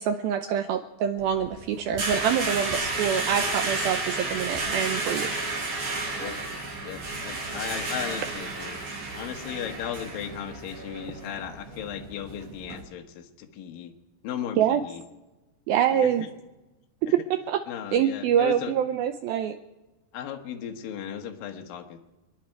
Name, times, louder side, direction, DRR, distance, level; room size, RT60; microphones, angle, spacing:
voice 1, 0.0-5.3 14.6-14.8 15.7-16.3 17.5-17.6 17.9-19.6, right 9 dB, 80° right, 7 dB, 2.1 m, -25 dB
sound 1, 1.2-12.8, right 2 dB, 45° right, 4.8 m, -32 dB
voice 2, 6.8-8.8 9.1-13.9 14.2-15.0 15.9-16.3 17.1-17.2 17.7-18.7 20.1-22.0, left 9 dB, 65° left, 4 dB, 2.6 m, -36 dB
28.5 x 10.5 x 4.6 m, 1.1 s
omnidirectional pair, 5.0 m